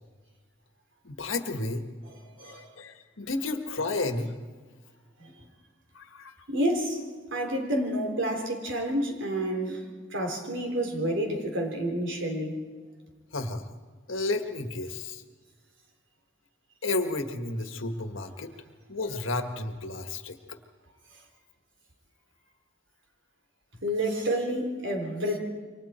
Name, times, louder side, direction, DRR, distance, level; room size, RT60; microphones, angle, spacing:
voice 1, 1.0-1.8 2.4-4.3 5.9-6.4 13.3-13.7 14.1-15.2 16.8-18.5 18.9-20.6, left 2 dB, 70° left, 6 dB, 1.7 m, -32 dB
voice 2, 6.5-7.0 7.3-12.6 23.8-25.4, equal, 65° right, 3 dB, 3.7 m, -29 dB
29.0 x 24.5 x 4.4 m, 1.5 s
head